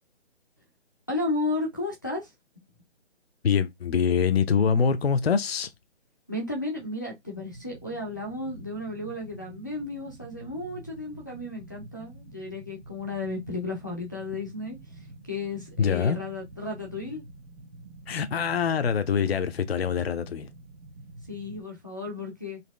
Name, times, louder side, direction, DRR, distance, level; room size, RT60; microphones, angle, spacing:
voice 1, 1.1-2.3 6.3-14.8 15.3-17.2 21.3-22.6, left 2 dB, 15° left, 0.5 m, -33 dB
voice 2, 3.4-5.7 15.8-16.2 18.1-20.5, left 6 dB, 60° left, 0.7 m, -24 dB
sound 1, 7.3-21.6, right 1 dB, 55° right, 1.5 m, -47 dB
4.1 x 2.8 x 3.2 m
figure-of-eight pair, 160°, 35 cm